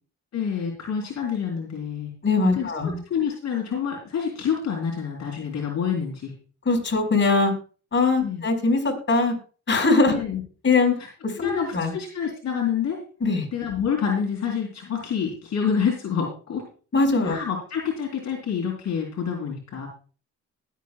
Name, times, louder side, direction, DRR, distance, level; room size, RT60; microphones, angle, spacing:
voice 1, 0.3-2.1 2.5-6.3 8.2-8.4 10.1-10.4 11.4-13.0 13.5-16.6 17.2-19.9, left 7 dB, 60° left, -1 dB, 3.5 m, -27 dB
voice 2, 2.2-3.0 6.6-7.5 7.9-9.3 9.7-10.2 10.6-10.9 11.2-11.9 13.2-13.5 16.9-17.4, left 3 dB, 40° left, 1 dB, 4.7 m, -21 dB
20.5 x 8.2 x 2.3 m, 0.37 s
cardioid pair, 90°, 30 cm